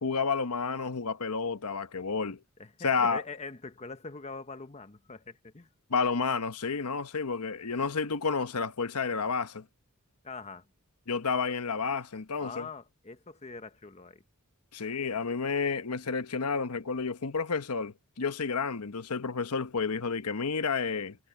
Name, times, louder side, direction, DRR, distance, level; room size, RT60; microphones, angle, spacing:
voice 1, 0.0-2.4 2.8-3.2 5.9-9.6 11.1-12.7 14.7-21.2, left 5 dB, 85° left, 1.0 m, -30 dB
voice 2, 2.6-5.7 10.2-10.7 12.4-14.2, left 4 dB, 30° left, 1.0 m, -43 dB
head